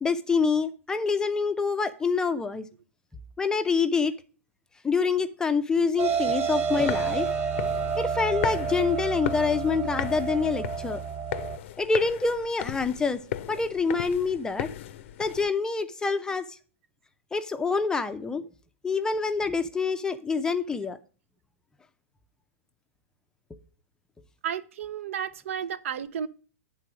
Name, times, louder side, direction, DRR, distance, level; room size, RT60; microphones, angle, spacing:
voice 1, 0.0-2.7 3.4-4.1 4.8-7.3 8.0-11.0 11.8-13.2 13.5-14.7 15.2-16.6 17.3-18.4 18.8-21.0, left 4 dB, 10° left, 0.5 m, -26 dB
sound 1, 6.0-11.6, right 6 dB, 30° right, 1.1 m, -29 dB
sound 2, 6.7-15.5, left 11 dB, 55° left, 0.5 m, -37 dB
voice 2, 24.4-26.3, right 8 dB, 65° right, 0.6 m, -32 dB
9.5 x 3.8 x 6.0 m
hypercardioid pair, 135°, 8 cm